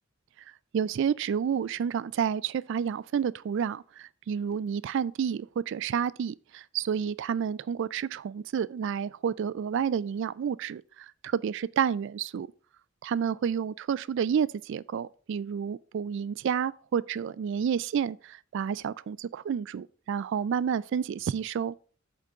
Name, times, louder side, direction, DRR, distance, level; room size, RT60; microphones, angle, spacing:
voice 1, 0.7-10.8 11.2-12.5 13.0-21.7, right 7 dB, 65° right, 0.3 m, -30 dB
8.3 x 3.7 x 5.4 m
head